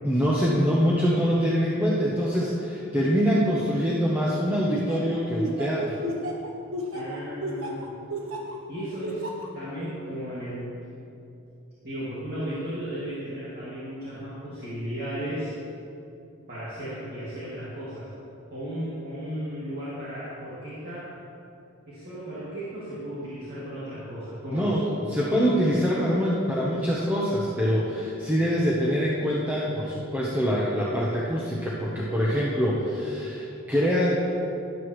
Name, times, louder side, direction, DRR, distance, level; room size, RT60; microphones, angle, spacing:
voice 1, 0.0-6.0 24.5-34.1, equal, 10° right, -6 dB, 0.9 m, -24 dB
Laughter, 4.7-8.6 9.0-9.5, right 1 dB, 70° right, 1.3 m, -32 dB
voice 2, 6.9-7.9 8.7-9.3 9.5-10.7 11.8-15.5 16.5-18.1 18.5-21.1 21.9-24.7, equal, 45° right, -10 dB, 2.2 m, -35 dB
12.5 x 11.5 x 3.2 m, 2.7 s
head